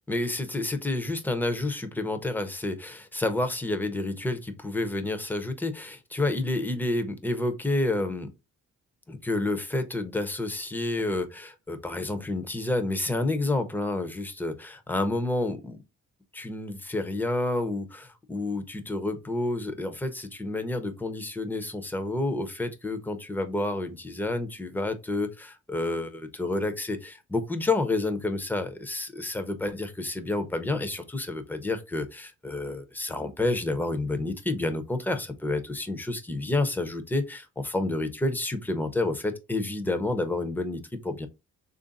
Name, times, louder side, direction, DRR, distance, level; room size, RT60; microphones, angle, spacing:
voice 1, 0.1-8.3 9.1-15.8 16.3-41.3, left 2 dB, 5° left, 0.6 m, -29 dB
3.3 x 2.6 x 3.9 m
cardioid pair, 90°, 30 cm